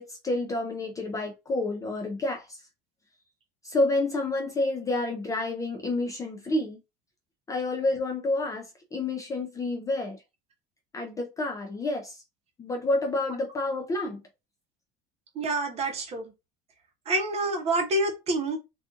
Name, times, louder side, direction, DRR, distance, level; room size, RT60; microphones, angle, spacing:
voice 1, 0.0-2.6 3.6-6.8 7.5-10.2 10.9-12.2 12.6-14.2, left 2 dB, 15° left, 0.3 m, -29 dB
voice 2, 15.4-16.2 17.1-18.6, right 2 dB, 35° right, 0.8 m, -27 dB
2.6 x 2.4 x 2.4 m
cardioid pair, 150°, 19 cm